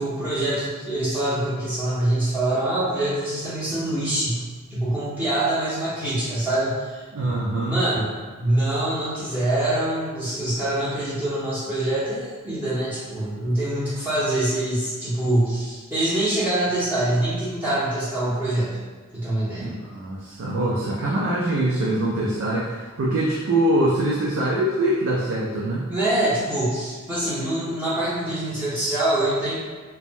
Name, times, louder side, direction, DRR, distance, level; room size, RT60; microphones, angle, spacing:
voice 1, 0.0-4.4 4.7-7.0 7.7-8.1 8.4-18.8 19.1-19.7 25.9-29.5, right 1 dB, 10° right, -13 dB, 0.8 m, -24 dB
voice 2, 7.1-7.8 19.6-25.9, right 1 dB, 60° right, -5 dB, 0.4 m, -23 dB
3.3 x 2.1 x 2.5 m, 1.5 s
head